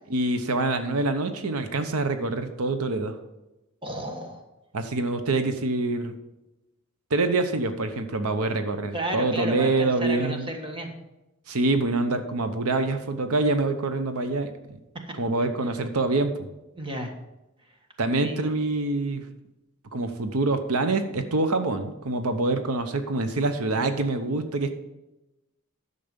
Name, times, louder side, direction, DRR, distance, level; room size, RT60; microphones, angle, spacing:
voice 1, 0.1-3.2 4.7-6.1 7.1-10.5 11.5-14.8 15.2-16.5 18.0-19.2 19.9-24.7, right 2 dB, 85° right, 8 dB, 0.9 m, -25 dB
voice 2, 3.8-4.4 8.9-10.9 15.0-15.1 16.8-17.1 18.2-18.5, right 1 dB, 25° right, 3 dB, 1.4 m, -32 dB
10.5 x 6.8 x 5.3 m, 0.99 s
head